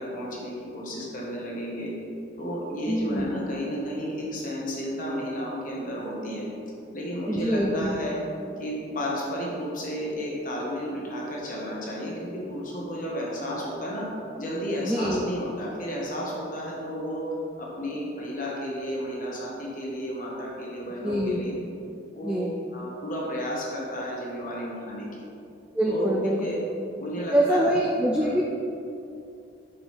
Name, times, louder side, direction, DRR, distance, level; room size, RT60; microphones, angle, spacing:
voice 1, 0.0-1.9 2.4-6.5 6.9-8.2 8.6-14.1 14.4-17.3 17.6-21.5 22.1-22.4 22.7-25.1 25.8-26.6 27.0-27.8 28.2-28.3, equal, 45° left, -4 dB, 1.2 m, -32 dB
voice 2, 2.9-3.3 7.3-8.0 14.9-15.2 21.0-21.4 22.2-22.5 25.7-26.4 27.3-28.4, equal, 5° right, -2 dB, 0.3 m, -24 dB
6.0 x 5.9 x 3.3 m, 2.6 s
head